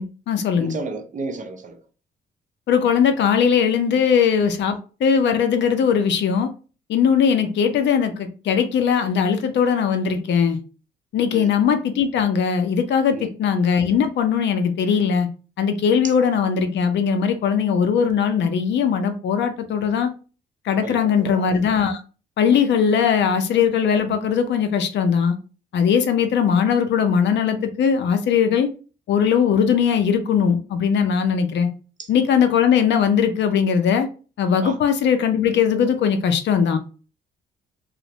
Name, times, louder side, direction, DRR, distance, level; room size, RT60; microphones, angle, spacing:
voice 1, 0.0-0.8 2.7-6.5 6.9-10.6 11.1-15.3 15.6-20.1 20.7-22.0 22.4-25.4 25.7-28.7 29.1-31.7 32.1-34.1 34.4-36.8, left 7 dB, 65° left, 0.5 m, -19 dB
voice 2, 0.6-1.8 11.3-11.5 13.1-13.3 20.8-21.5 34.6-34.8, right 3 dB, 40° right, 0.5 m, -32 dB
2.6 x 2.1 x 2.8 m
cardioid pair, 90°, 20 cm